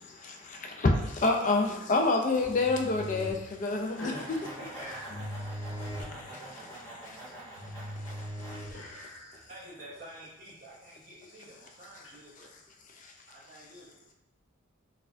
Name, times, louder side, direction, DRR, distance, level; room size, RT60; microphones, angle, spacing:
voice 1, 0.2-0.6 4.0-5.0 5.5-5.9 6.4-6.6 8.6-9.5, left 1 dB, 60° left, -6 dB, 1.2 m, -46 dB
voice 2, 0.8-4.1, left 3 dB, 35° left, 3 dB, 0.3 m, -26 dB
sound 1, 2.3-9.3, equal, 90° left, 1.1 m, -41 dB
sound 2, 3.6-8.6, right 1 dB, 15° left, 1.1 m, -46 dB
voice 3, 4.4-5.0 9.3-12.5 13.3-13.9, right 1 dB, 40° right, -8 dB, 0.6 m, -49 dB
4.2 x 2.3 x 2.5 m, 0.94 s
head